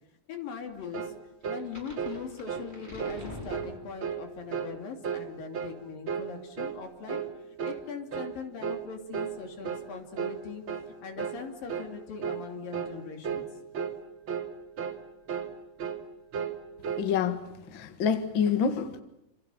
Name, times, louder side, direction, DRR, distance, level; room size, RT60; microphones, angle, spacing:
voice 1, 0.3-1.1 1.4-7.2 7.6-13.5, left 5 dB, 85° left, 4.6 m, -41 dB
sound 1, 0.9-1.2 1.4-1.7 2.0-2.2 2.5-2.7 3.0-3.2 3.5-3.7 4.0-4.2 4.5-4.7 5.0-5.3 5.5-5.8 6.1-6.3 6.6-6.8 7.1-7.3 7.6-7.8 8.1-8.4 8.6-8.8 9.1-9.4 9.6-9.9 10.2-10.4 10.7-10.9 11.2-11.4 11.7-11.9 12.2-12.4 12.7-13.0 13.2-13.5 13.7-14.0 14.3-14.5 14.8-15.0 15.3-15.5 15.8-16.0 16.3-17.1, right 7 dB, 40° right, 2.7 m, -34 dB
sound 2, 1.4-4.3, left 1 dB, 15° left, 6.0 m, -45 dB
voice 2, 17.0-17.4 17.7-19.0, left 7 dB, 45° left, 2.0 m, -27 dB
29.0 x 27.5 x 7.1 m
omnidirectional pair, 3.9 m